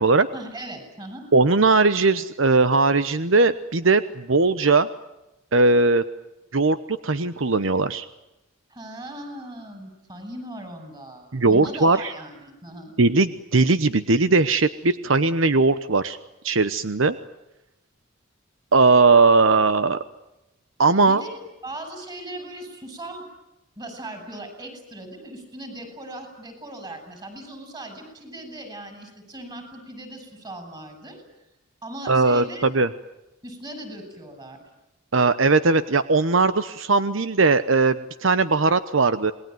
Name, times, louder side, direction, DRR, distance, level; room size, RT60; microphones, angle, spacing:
voice 1, 0.3-1.2 8.7-12.9 21.0-23.2 23.8-31.2 31.8-32.7 33.4-34.6, right 1 dB, 20° right, 7 dB, 7.2 m, -38 dB
voice 2, 1.3-4.9 5.5-6.0 6.5-8.1 11.3-12.1 13.0-16.2 16.4-17.2 18.7-20.0 20.8-21.2 32.1-32.9 35.1-39.3, right 3 dB, 70° right, 13 dB, 1.0 m, -19 dB
28.0 x 21.0 x 9.3 m, 0.93 s
head